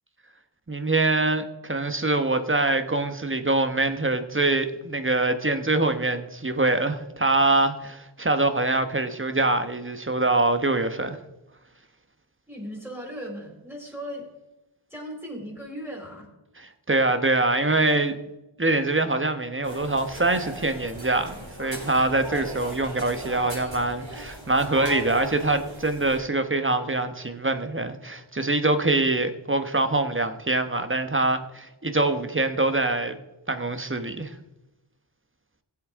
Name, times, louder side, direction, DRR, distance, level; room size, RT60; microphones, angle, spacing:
voice 1, 0.7-11.2 16.6-18.2 18.6-33.2 33.5-34.4, right 2 dB, 25° right, 9 dB, 1.1 m, -24 dB
voice 2, 12.5-14.2 14.9-16.3, equal, 5° right, -1 dB, 4.6 m, -37 dB
sound 1, 19.6-26.2, right 1 dB, 70° right, 4.0 m, -38 dB
16.0 x 8.0 x 3.7 m, 0.99 s
wide cardioid pair, 40°, 49 cm